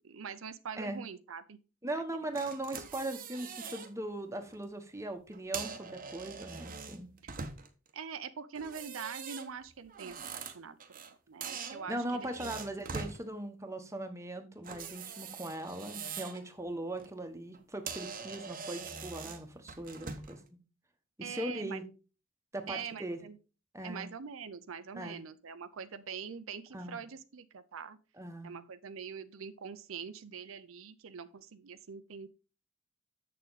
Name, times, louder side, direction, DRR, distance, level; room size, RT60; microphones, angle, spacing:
voice 1, 0.0-1.6 2.1-2.2 7.9-12.5 21.2-21.8 22.7-23.4 23.8-28.0 28.4-32.3, right 6 dB, 75° right, 11 dB, 0.6 m, -44 dB
voice 2, 1.8-7.1 11.9-20.4 21.2-21.8 22.5-23.2 23.7-24.1 25.0-25.2 26.7-27.0 28.2-28.6, right 1 dB, 15° right, 6 dB, 1.1 m, -39 dB
sound 1, 2.4-3.9 4.3-4.6 5.3-7.9 8.6-11.1 11.4-13.2 14.6-16.4 16.8-17.1 17.5-17.6 17.9-20.4, right 5 dB, 45° right, 0.9 m, -43 dB
7.5 x 6.6 x 4.0 m, 0.33 s
head